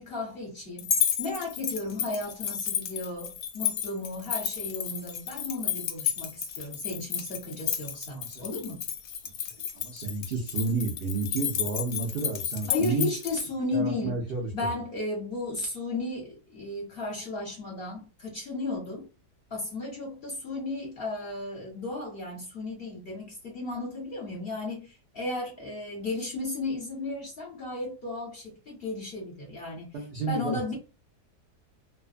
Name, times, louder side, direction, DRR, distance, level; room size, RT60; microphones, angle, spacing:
voice 1, 0.0-8.8 12.7-14.2 14.5-19.1 19.5-30.7, left 2 dB, 50° left, 0.7 m, -34 dB
sound 1, 0.8-13.5, left 9 dB, 85° left, 1.2 m, -32 dB
voice 2, 9.7-13.1 13.7-14.5 29.9-30.7, right 3 dB, 80° right, 0.5 m, -31 dB
2.5 x 2.4 x 2.4 m
omnidirectional pair, 1.7 m